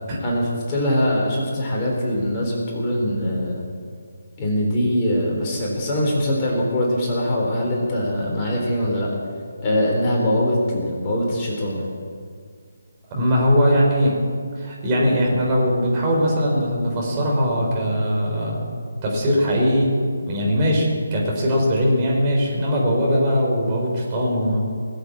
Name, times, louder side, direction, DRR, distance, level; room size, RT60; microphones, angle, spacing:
voice 1, 0.2-3.6 4.4-9.1 9.6-11.9, left 1 dB, 20° left, -3 dB, 3.8 m, -22 dB
voice 2, 13.1-14.1 14.6-18.7 19.0-20.0 20.3-24.6, equal, 25° right, -3 dB, 4.6 m, -20 dB
20.0 x 8.1 x 8.6 m, 2.1 s
figure-of-eight pair, 150°, 0 cm